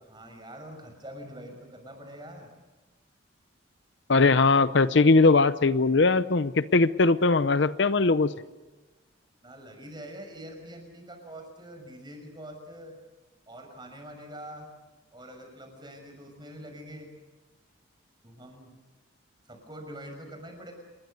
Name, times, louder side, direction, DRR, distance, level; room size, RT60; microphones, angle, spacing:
voice 1, 0.0-2.5 9.4-13.0 13.5-14.7 15.1-17.1 18.2-18.8 19.5-20.7, equal, 20° right, 4 dB, 6.2 m, -44 dB
voice 2, 4.1-8.3, left 3 dB, 60° left, 14 dB, 0.7 m, -20 dB
28.5 x 21.5 x 6.7 m, 1.2 s
head